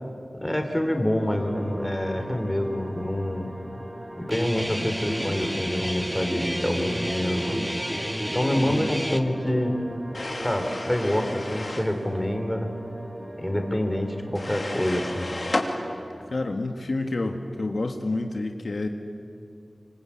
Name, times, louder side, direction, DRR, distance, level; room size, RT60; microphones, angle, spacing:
voice 1, 0.4-3.5 4.2-7.6 8.3-9.8 10.4-12.7 13.4-15.3, left 1 dB, 10° left, 5 dB, 3.5 m, -26 dB
sound 1, 1.3-16.0, right 1 dB, 25° right, 3.3 m, -39 dB
Guitar, 4.3-9.2, equal, 5° right, 1.7 m, -30 dB
sound 2, 10.1-11.9 14.4-15.7, left 2 dB, 40° left, 3.1 m, -32 dB
voice 2, 16.3-18.9, left 2 dB, 65° left, 4 dB, 1.6 m, -29 dB
25.5 x 25.5 x 8.6 m, 2.5 s
wide cardioid pair, 60°, 0 cm